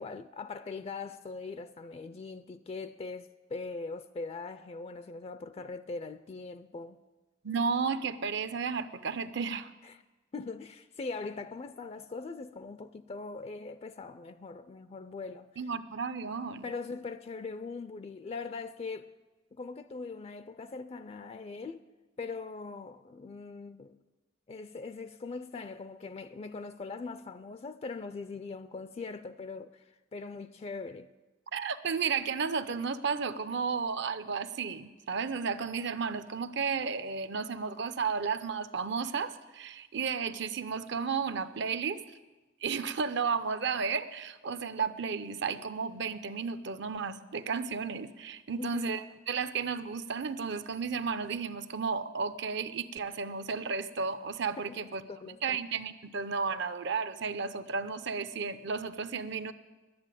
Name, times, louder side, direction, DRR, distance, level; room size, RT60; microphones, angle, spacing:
voice 1, 0.0-7.0 9.8-10.0 10.3-15.5 16.6-19.1 19.5-21.8 22.2-24.0 24.5-29.8 30.1-31.1 48.6-48.8 54.7-54.8 55.1-55.6, left 4 dB, 30° left, 0.4 m, -41 dB
voice 2, 7.4-9.7 15.6-16.7 31.5-42.0 42.6-55.0 55.4-59.5, right 5 dB, 65° right, 0.6 m, -33 dB
11.0 x 9.6 x 9.0 m
head